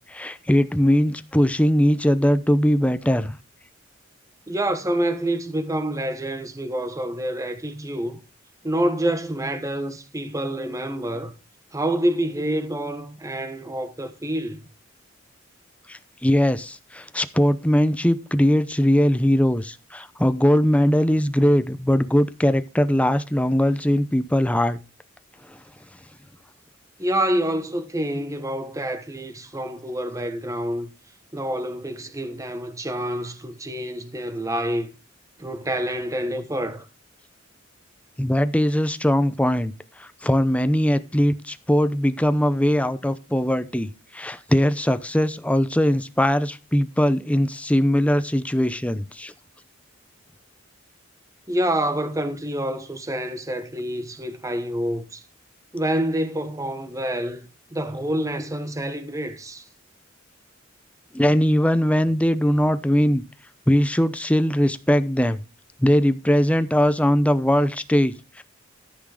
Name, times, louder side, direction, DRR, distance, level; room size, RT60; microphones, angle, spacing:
voice 1, 0.1-3.4 15.9-24.8 25.5-25.6 38.2-39.7 40.0-49.3 61.1-63.2 63.7-65.4 65.8-68.4, equal, 5° left, 0.7 m, -20 dB
voice 2, 4.5-8.2 8.6-11.3 11.7-14.6 27.0-30.9 31.3-34.9 35.4-36.9 51.5-55.2 55.7-59.7, right 1 dB, 15° right, 1.2 m, -27 dB
14.0 x 6.1 x 4.9 m
head